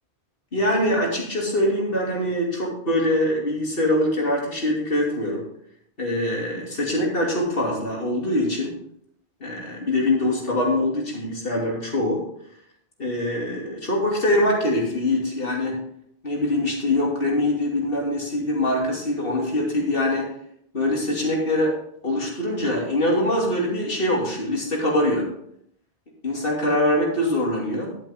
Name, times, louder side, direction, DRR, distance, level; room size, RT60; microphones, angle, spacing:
voice 1, 0.5-5.5 6.0-8.8 9.4-12.3 13.0-15.8 16.2-20.4 20.7-21.8 22.0-25.3 26.2-28.0, left 1 dB, 60° left, -2 dB, 2.9 m, -23 dB
11.5 x 7.9 x 3.6 m, 0.69 s
omnidirectional pair, 1.1 m